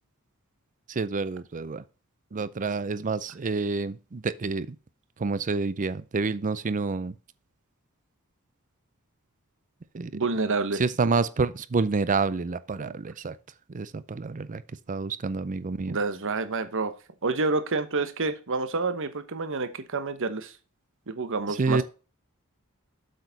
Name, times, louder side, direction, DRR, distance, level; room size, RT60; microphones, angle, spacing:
voice 1, 1.0-1.8 2.3-4.7 5.2-7.1 9.9-10.1 10.8-13.3 13.7-14.6 14.9-16.0 21.6-21.8, right 4 dB, 35° right, 0.5 m, -28 dB
voice 2, 10.1-10.8 12.8-13.0 15.9-16.9 17.2-20.6 21.1-21.8, right 3 dB, 60° right, 1.0 m, -28 dB
8.0 x 6.6 x 4.0 m
head